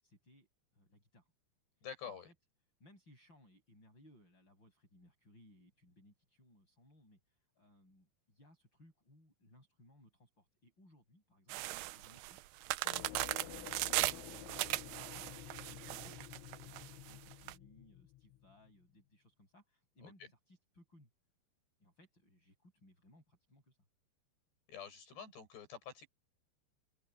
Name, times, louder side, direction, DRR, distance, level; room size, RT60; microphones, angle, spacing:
voice 1, 0.0-1.3 2.1-2.3 2.8-11.6 12.0-12.4 12.9-15.3 15.6-21.1 21.8-23.8, left 1 dB, 25° left, 8.7 m, -65 dB
voice 2, 1.8-2.3 20.0-20.1 24.7-26.1, left 7 dB, 65° left, 10.0 m, -48 dB
sound 1, 11.5-17.5, right 19 dB, 85° right, 2.4 m, -38 dB
sound 2, 12.9-18.7, left 17 dB, 90° left, 3.2 m, -51 dB
open air
omnidirectional pair, 5.3 m